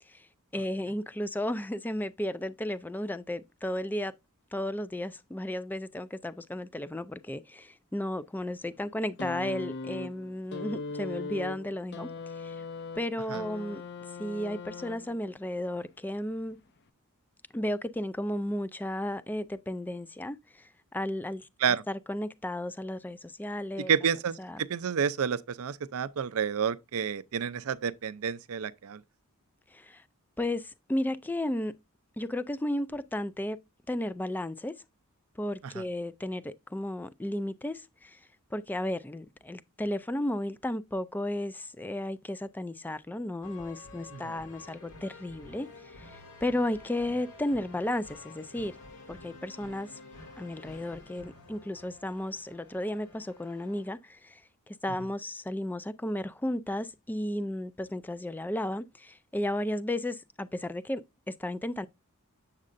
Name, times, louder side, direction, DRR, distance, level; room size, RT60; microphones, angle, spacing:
voice 1, 0.5-4.1 4.5-12.1 12.4-12.6 13.0-13.8 14.2-16.6 17.5-23.9 24.4-24.6 29.7-30.0 30.4-31.7 32.2-33.6 33.9-34.7 35.4-38.2 38.5-48.8 49.1-50.0 50.4-54.4 54.7-61.9, left 1 dB, 10° left, 0.3 m, -34 dB
sound 1, 9.2-15.4 16.4-16.5, left 3 dB, 50° left, 0.6 m, -39 dB
voice 2, 23.9-24.4 24.7-29.0 44.1-44.3, right 7 dB, 65° right, 0.5 m, -29 dB
sound 2, 43.4-53.9, left 3 dB, 90° left, 2.6 m, -50 dB
7.5 x 7.3 x 2.5 m
head